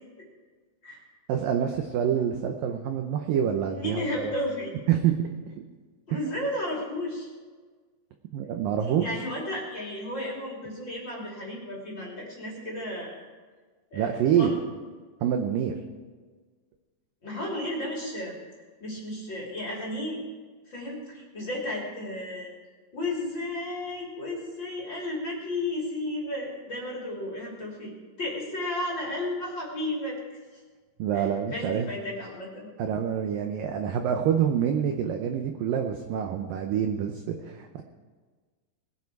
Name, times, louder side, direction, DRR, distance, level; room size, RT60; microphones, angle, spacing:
voice 1, 1.3-4.3 4.9-5.3 6.1-6.3 8.3-9.2 13.9-14.5 15.2-15.7 31.0-31.9 32.8-37.8, right 8 dB, 80° right, 5 dB, 2.0 m, -26 dB
voice 2, 3.8-4.7 6.1-7.3 9.0-13.3 13.9-14.6 17.2-18.4 18.8-20.2 20.7-22.5 22.9-27.9 28.2-30.2 31.1-32.7, left 1 dB, 30° left, -2 dB, 2.8 m, -33 dB
20.5 x 9.8 x 4.7 m, 1.4 s
omnidirectional pair, 5.1 m